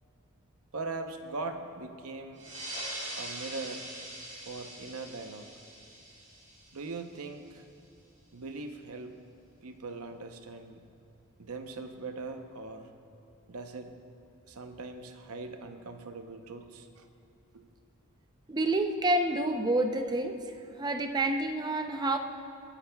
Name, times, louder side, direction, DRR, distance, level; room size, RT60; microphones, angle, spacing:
voice 1, 0.7-2.4 3.2-3.9 4.3-5.5 6.7-7.7 8.3-9.2 9.6-10.8 11.4-12.9 13.5-13.9 14.5-17.0 17.5-17.6, right 3 dB, 75° right, 6 dB, 0.8 m, -40 dB
sound 1, 2.4-7.4, right 1 dB, 35° right, 2.4 m, -42 dB
voice 2, 18.5-20.4 20.8-22.2, right 2 dB, 20° right, 6 dB, 0.6 m, -28 dB
24.0 x 10.0 x 2.3 m, 2.9 s
head